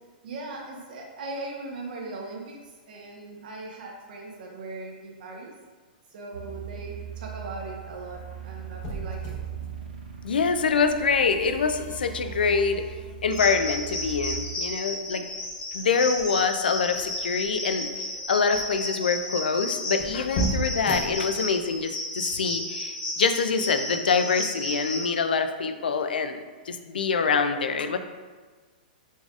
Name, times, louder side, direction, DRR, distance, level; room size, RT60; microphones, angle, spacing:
voice 1, 0.2-5.5 6.1-9.3 19.0-19.1, right 2 dB, 65° right, 0 dB, 0.9 m, -39 dB
sound 1, 6.3-14.4, right 9 dB, 85° right, 0.5 m, -39 dB
sound 2, 7.8-21.9, right 1 dB, 45° left, 0.8 m, -38 dB
voice 2, 10.2-12.9 13.2-15.3 15.7-17.9 18.3-28.0, left 5 dB, 90° left, 8 dB, 0.3 m, -25 dB
sound 3, 13.3-25.1, left 1 dB, 70° left, 1.2 m, -33 dB
4.1 x 3.5 x 2.3 m, 1.4 s
hypercardioid pair, 135°, 5 cm